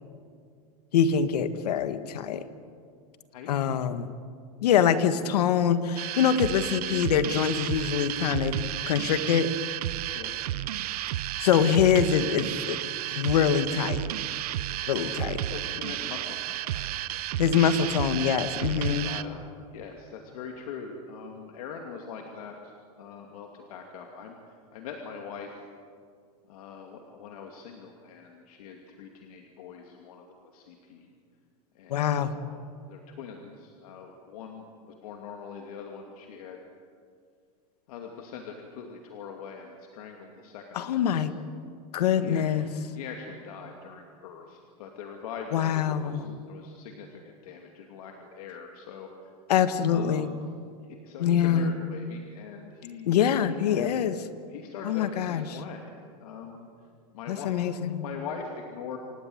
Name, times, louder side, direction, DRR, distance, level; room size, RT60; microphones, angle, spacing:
voice 1, 0.9-2.5 3.5-4.1 4.6-9.5 11.4-12.8 13.1-14.0 14.9-15.4 17.4-19.1 31.9-32.4 40.7-41.3 41.9-42.7 45.5-46.3 49.5-50.3 51.2-51.7 53.0-54.2 54.8-55.4 57.3-58.1, left 8 dB, 90° left, 11 dB, 1.6 m, -24 dB
sound 1, 6.0-19.2, right 13 dB, 75° right, 0.9 m, -32 dB
voice 2, 10.1-10.4 14.9-15.2 15.5-16.9 19.0-19.4 19.7-24.3 24.7-25.5 26.5-31.1 31.7-36.6 37.9-41.5 42.2-49.1 49.9-50.3 50.8-53.2 53.4-53.9 54.5-55.9 56.2-56.7 57.1-57.6 58.0-59.0, left 6 dB, 70° left, 2 dB, 2.5 m, -42 dB
26.5 x 19.0 x 7.9 m, 2.2 s
supercardioid pair, 165°, 20 cm